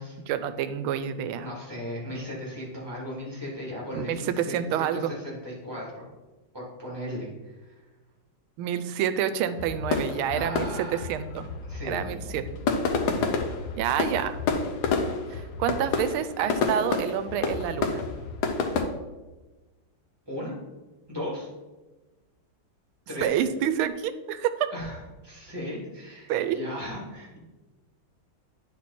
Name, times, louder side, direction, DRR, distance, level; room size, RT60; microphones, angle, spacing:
voice 1, 0.3-1.5 3.9-5.1 8.6-11.4 11.9-12.4 13.8-14.4 15.3-18.0 23.2-24.7 26.3-26.6, right 9 dB, 85° right, 11 dB, 1.4 m, -28 dB
voice 2, 1.4-6.1 6.5-7.8 10.3-11.0 11.6-12.2 20.3-20.5 21.1-21.5 23.1-23.4 24.7-27.4, left 1 dB, 10° right, -5 dB, 2.5 m, -37 dB
sound 1, 9.6-18.8, left 4 dB, 65° left, 1.2 m, -29 dB
9.9 x 4.5 x 4.2 m, 1.2 s
omnidirectional pair, 2.3 m